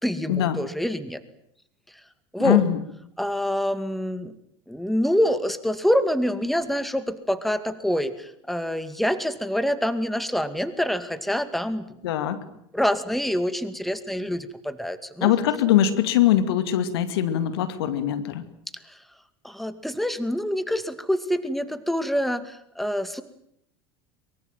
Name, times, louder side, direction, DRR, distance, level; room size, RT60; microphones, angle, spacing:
voice 1, 0.0-1.2 2.3-2.6 3.2-4.3 4.7-12.3 12.7-15.3 18.9-19.0 19.4-23.2, equal, ahead, 11 dB, 2.2 m, -26 dB
voice 2, 2.4-2.8 12.0-12.4 15.2-18.4, left 11 dB, 70° left, 11 dB, 2.4 m, -22 dB
23.5 x 23.0 x 9.1 m, 0.73 s
hypercardioid pair, 80°, 13 cm